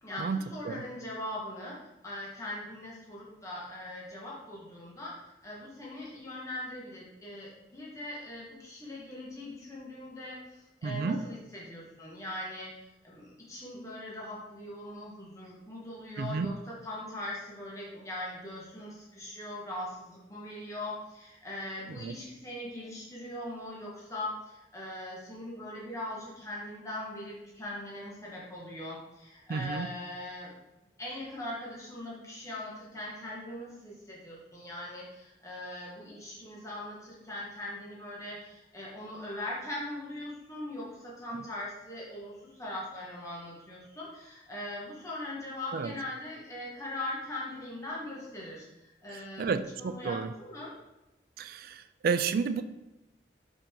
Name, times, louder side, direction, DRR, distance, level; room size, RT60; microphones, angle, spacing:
voice 1, 0.0-1.7 2.0-5.1 5.4-12.7 13.0-16.5 16.8-30.5 31.0-50.7, left 1 dB, 20° left, -5 dB, 1.4 m, -41 dB
voice 2, 10.8-11.2 16.2-16.6 21.9-22.2 29.5-29.9 41.3-41.5 45.7-45.9 49.1-50.3 51.4-52.6, right 5 dB, 55° right, 12 dB, 0.3 m, -32 dB
5.3 x 4.9 x 3.8 m, 0.96 s
head